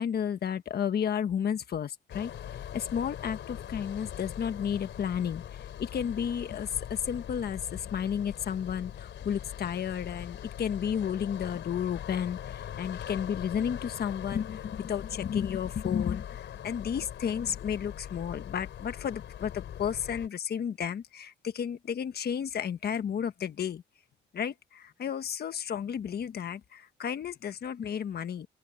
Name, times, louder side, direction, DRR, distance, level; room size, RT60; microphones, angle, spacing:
voice 1, 0.0-2.3 2.7-23.8 24.3-28.5, left 8 dB, 55° left, 1.4 m, -32 dB
sound 1, 2.1-20.3, left 10 dB, 70° left, 4.0 m, -41 dB
open air
cardioid pair, 90°, 20 cm